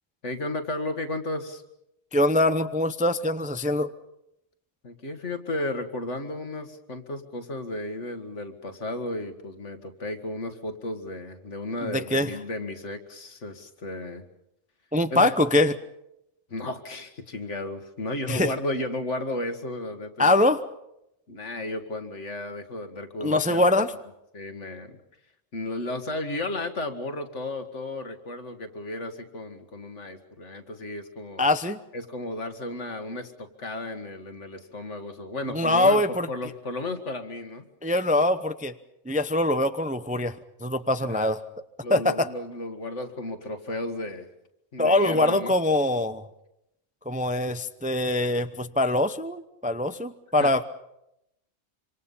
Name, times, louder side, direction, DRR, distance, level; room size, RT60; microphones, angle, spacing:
voice 1, 0.2-1.6 4.8-14.2 15.1-15.3 16.5-20.4 21.3-23.8 24.3-25.0 25.5-31.4 31.9-36.0 36.3-37.7 41.0-41.3 41.8-44.3 44.7-45.6 50.4-50.5, left 2 dB, 65° left, 7 dB, 2.2 m, -34 dB
voice 2, 2.1-3.9 11.8-12.3 14.9-15.8 18.3-18.5 20.2-20.6 23.2-23.9 31.4-31.8 35.5-36.3 37.8-38.7 39.1-40.4 40.6-41.4 41.9-42.3 44.8-46.2 47.1-50.6, left 1 dB, 10° right, 10 dB, 0.6 m, -23 dB
26.5 x 25.5 x 5.6 m, 0.83 s
omnidirectional pair, 1.3 m